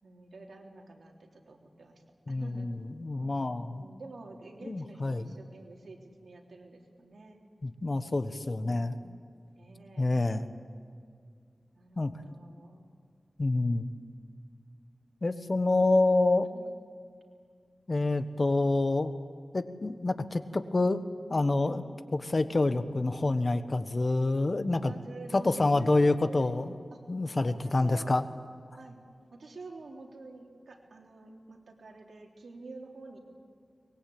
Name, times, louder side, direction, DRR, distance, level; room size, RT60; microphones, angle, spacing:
voice 1, 0.0-2.7 3.0-7.4 8.4-10.1 11.7-12.9 16.5-16.7 21.6-21.8 24.8-26.5 26.9-27.0 27.6-28.1 28.7-29.0 29.3-33.2, right 3 dB, 85° right, 1 dB, 3.4 m, -49 dB
voice 2, 2.3-3.8 4.6-5.3 7.6-9.0 10.0-10.4 12.0-12.1 13.4-13.9 15.2-16.5 17.9-19.1 19.5-21.0 21.3-21.8 22.1-24.9 25.3-26.7 27.1-28.2, left 2 dB, 45° left, 11 dB, 1.3 m, -27 dB
23.5 x 21.5 x 8.7 m, 2.2 s
wide cardioid pair, 75°, 0 cm